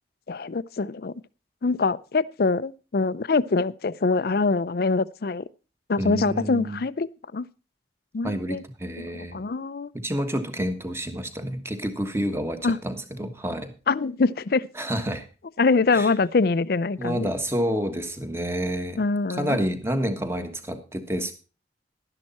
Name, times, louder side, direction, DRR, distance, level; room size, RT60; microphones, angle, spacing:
voice 1, 0.3-1.1 1.6-5.4 5.9-7.5 8.1-8.6 9.0-9.9 12.6-12.8 13.9-14.7 15.6-17.3 19.0-19.6, left 4 dB, 55° left, 0.5 m, -24 dB
voice 2, 6.0-6.8 8.2-9.4 9.9-13.7 14.8-15.2 15.9-16.1 17.0-19.0 19.3-21.3, equal, 15° right, 1.3 m, -29 dB
11.5 x 11.0 x 4.2 m
head